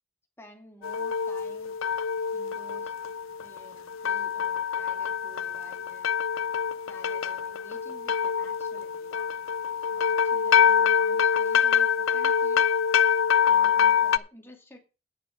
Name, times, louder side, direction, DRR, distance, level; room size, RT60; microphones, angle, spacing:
voice 1, 0.4-1.8 2.3-2.9 3.4-6.1 6.9-9.3 9.9-12.6 13.5-14.8, equal, 10° left, 3 dB, 2.4 m, -51 dB
sound 1, 0.8-14.2, left 7 dB, 75° left, 0.5 m, -25 dB
10.0 x 6.8 x 6.5 m, 0.31 s
head